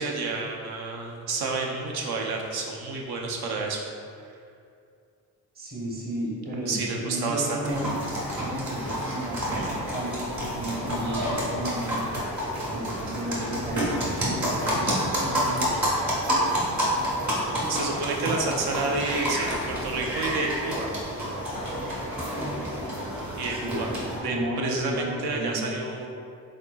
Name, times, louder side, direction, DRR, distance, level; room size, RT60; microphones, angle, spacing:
voice 1, 0.0-3.8 6.7-7.6 17.7-20.9 23.4-23.9 24.2-26.1, right 3 dB, 60° right, 0 dB, 0.8 m, -29 dB
voice 2, 5.5-7.9 8.3-12.0 12.7-15.7 23.5-25.8, right 1 dB, 20° right, -4 dB, 1.0 m, -33 dB
sound 1, 7.6-24.2, equal, 40° right, 1.5 m, -29 dB
4.2 x 3.8 x 2.4 m, 2.4 s
supercardioid pair, 55°, 43 cm